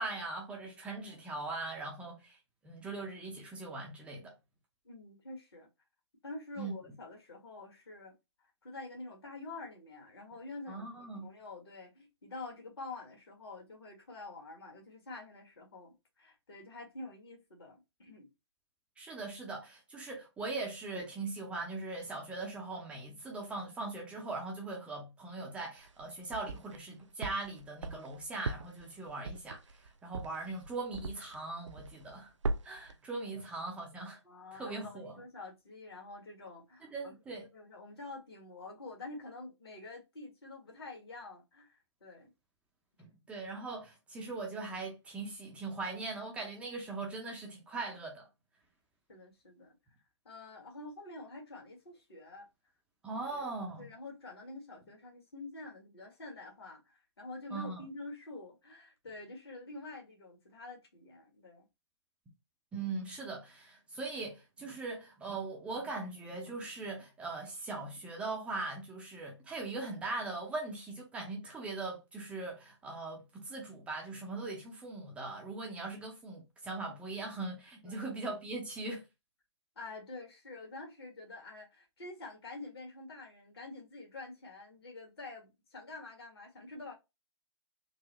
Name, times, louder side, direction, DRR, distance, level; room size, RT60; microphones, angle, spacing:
voice 1, 0.0-2.4 2.6-4.3 6.6-6.7 10.7-11.3 19.0-32.3 32.6-34.2 34.5-35.1 36.9-37.4 43.3-48.2 53.0-53.9 57.5-57.8 62.7-79.0, right 3 dB, 5° right, 0.6 m, -40 dB
voice 2, 4.8-5.7 6.2-8.1 8.6-10.9 11.2-18.3 33.3-33.4 34.2-37.1 37.5-42.3 49.1-49.7 50.2-52.5 53.2-61.6 77.8-78.1 79.7-86.9, left 2 dB, 60° left, 1.6 m, -47 dB
sound 1, 25.8-26.8 27.2-31.4 31.7-32.2 32.4-32.9, right 3 dB, 85° right, 0.4 m, -39 dB
3.8 x 2.0 x 3.0 m
figure-of-eight pair, 135°, 15 cm